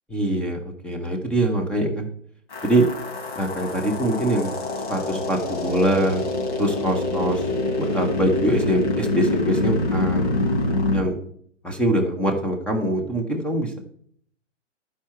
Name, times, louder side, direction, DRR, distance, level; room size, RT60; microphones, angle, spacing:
voice 1, 0.1-2.1 2.6-2.9 3.4-4.5 4.9-6.2 6.6-7.4 7.8-10.3 10.9-11.2 11.6-13.8, right 1 dB, 5° left, 3 dB, 0.8 m, -23 dB
sound 1, 2.5-11.0, left 2 dB, 65° left, 2.8 m, -25 dB
11.5 x 4.9 x 4.4 m, 0.63 s
hypercardioid pair, 135°, 38 cm